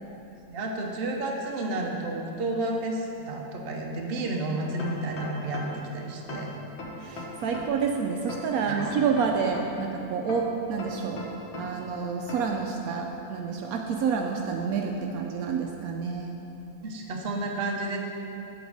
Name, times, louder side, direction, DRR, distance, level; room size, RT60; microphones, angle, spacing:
voice 1, 0.5-6.5 8.6-8.8 16.8-18.0, right 2 dB, 45° right, 0 dB, 0.9 m, -31 dB
sound 1, 4.8-5.9 6.3-7.9 8.3-9.9 10.3-11.9 12.3-12.6, left 2 dB, 50° left, 1.2 m, -39 dB
voice 2, 7.0-11.2 11.6-16.4, right 5 dB, 75° right, 2 dB, 1.0 m, -28 dB
8.4 x 4.0 x 6.3 m, 2.9 s
omnidirectional pair, 1.6 m